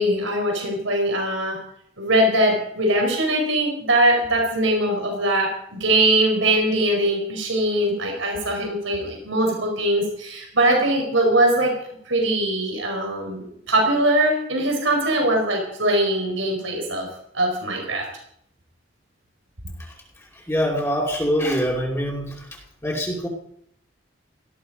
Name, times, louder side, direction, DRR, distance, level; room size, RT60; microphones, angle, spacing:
voice 1, 0.0-1.6 2.0-11.7 12.0-17.1 17.3-18.0, right 1 dB, 85° right, 1 dB, 5.0 m, -21 dB
voice 2, 20.5-22.3 22.8-23.3, equal, 15° left, -3 dB, 2.6 m, -23 dB
18.0 x 14.0 x 5.1 m, 0.72 s
head